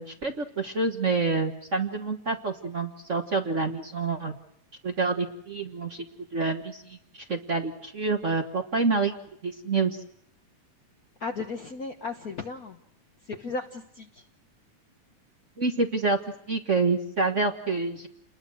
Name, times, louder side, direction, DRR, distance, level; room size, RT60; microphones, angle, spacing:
voice 1, 0.0-4.3 4.8-6.0 6.3-9.1 9.4-10.0 15.6-16.2 16.5-18.1, right 3 dB, 50° right, 5 dB, 0.9 m, -27 dB
voice 2, 11.2-12.8 13.3-14.1, left 3 dB, 65° left, 3 dB, 0.9 m, -35 dB
29.5 x 21.0 x 6.4 m, 0.72 s
omnidirectional pair, 3.6 m